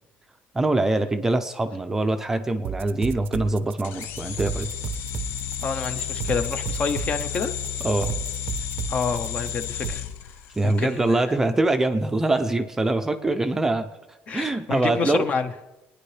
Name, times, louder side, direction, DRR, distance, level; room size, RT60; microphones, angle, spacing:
voice 1, 0.5-4.7 7.8-8.2 10.5-13.9 14.3-15.3, right 2 dB, 10° right, 7 dB, 0.5 m, -23 dB
sound 1, 2.6-9.9, right 8 dB, 55° right, 0.5 m, -33 dB
sound 2, 3.8-11.0, left 9 dB, 70° left, 0.6 m, -32 dB
voice 2, 5.6-7.5 8.9-10.0 10.6-11.2 14.3-15.5, left 5 dB, 30° left, 10 dB, 0.7 m, -28 dB
22.0 x 9.9 x 3.3 m, 1.0 s
cardioid pair, 160°, 4 cm